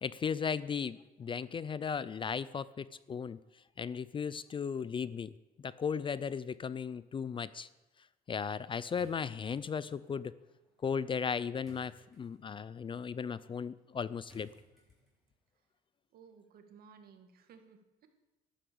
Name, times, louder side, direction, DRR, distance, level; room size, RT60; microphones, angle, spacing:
voice 1, 0.0-3.4 3.8-5.3 5.6-7.7 8.3-10.3 10.8-14.5, left 6 dB, 30° left, 18 dB, 0.4 m, -36 dB
sound 1, 8.9-15.4, equal, ahead, 6.2 m, -65 dB
voice 2, 16.1-18.1, right 6 dB, 65° right, 6 dB, 2.0 m, -57 dB
12.5 x 11.5 x 7.0 m, 1.1 s
cardioid pair, 110°, 17 cm